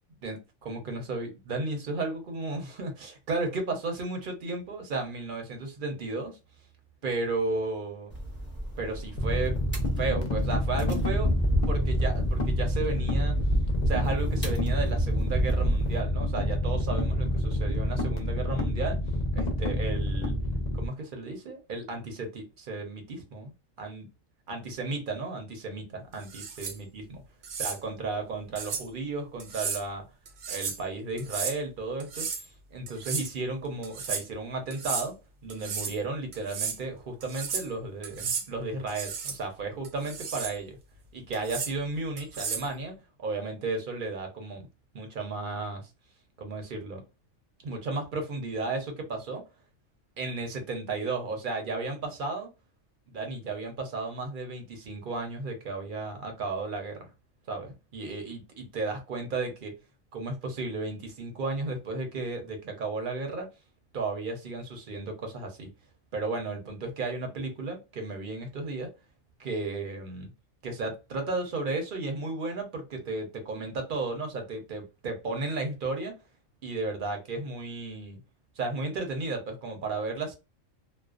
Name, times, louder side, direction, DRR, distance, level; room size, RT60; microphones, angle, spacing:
voice 1, 0.2-6.3 7.0-8.1 8.8-9.6 10.0-11.3 11.7-13.3 13.9-19.0 19.4-20.4 20.8-23.5 23.8-24.1 24.5-27.2 27.6-30.0 30.5-35.1 35.4-40.8 41.1-42.9 43.2-44.7 44.9-45.9 46.4-47.0 47.6-49.4 50.2-52.5 53.1-57.1 57.5-59.7 60.1-63.5 63.9-65.7 66.1-68.9 69.4-70.3 70.6-76.1 76.6-78.2 78.6-80.3, right 3 dB, 50° right, 0.7 m, -34 dB
sound 1, 8.1-16.0, right 1 dB, 10° left, 0.6 m, -30 dB
sound 2, 9.1-20.9, left 1 dB, 55° left, 0.5 m, -28 dB
sound 3, 26.2-26.8 27.4-27.8 28.6-28.9 29.4-29.8 30.3-30.8 31.2-31.6 32.0-32.5 32.9-33.3 33.8-34.2 34.7-35.1 35.5-36.0 36.3-36.8 37.2-37.7 38.0-38.5 38.9-39.4 39.8-40.6 41.3-41.7 42.2-42.7, right 6 dB, 80° right, 1.0 m, -34 dB
2.4 x 2.1 x 2.4 m
omnidirectional pair, 1.4 m